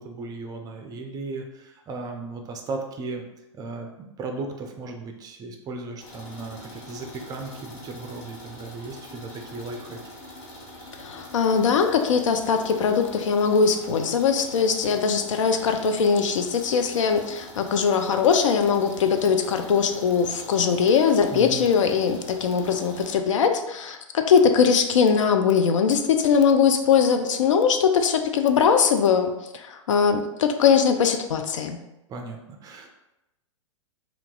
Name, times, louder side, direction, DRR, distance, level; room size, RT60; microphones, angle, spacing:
voice 1, 0.0-3.2 3.5-3.9 4.2-10.0 21.3-21.7 32.1-32.9, right 3 dB, 20° right, 3 dB, 0.5 m, -36 dB
sound 1, 6.0-23.2, left 1 dB, 45° left, 1.3 m, -44 dB
voice 2, 11.0-31.8, left 6 dB, 70° left, 7 dB, 0.4 m, -21 dB
2.8 x 2.4 x 3.6 m, 0.92 s
hypercardioid pair, 110°, 17 cm